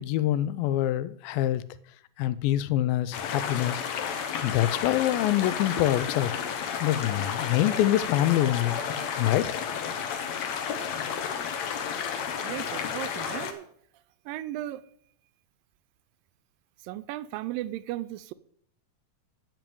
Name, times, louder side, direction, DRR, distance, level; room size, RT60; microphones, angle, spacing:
voice 1, 0.0-1.6 2.2-3.8 4.4-6.3 6.8-8.8 9.1-9.6, left 13 dB, 85° left, 2.3 m, -25 dB
sound 1, 3.1-13.5, left 7 dB, 65° left, 1.9 m, -32 dB
voice 2, 12.4-13.7 14.3-14.8 16.8-18.3, right 15 dB, 80° right, 2.2 m, -35 dB
10.5 x 6.0 x 8.5 m
omnidirectional pair, 4.1 m